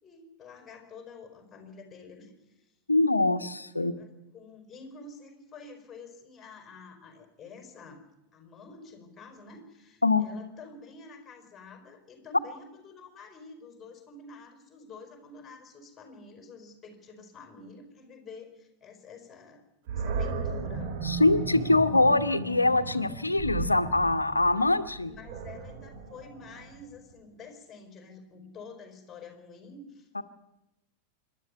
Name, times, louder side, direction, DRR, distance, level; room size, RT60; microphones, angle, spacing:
voice 1, 0.0-2.8 3.8-4.1 4.3-8.0 8.3-21.4 24.5-24.7 25.1-30.2, left 4 dB, 20° left, 5 dB, 5.0 m, -49 dB
voice 2, 2.9-3.9 10.0-10.2 21.0-25.1 30.1-30.2, left 2 dB, 80° left, 11 dB, 1.1 m, -24 dB
Animal, 19.9-27.0, right 4 dB, 50° right, 2.9 m, -35 dB
26.0 x 11.5 x 9.7 m, 0.93 s
figure-of-eight pair, 90°, 0 cm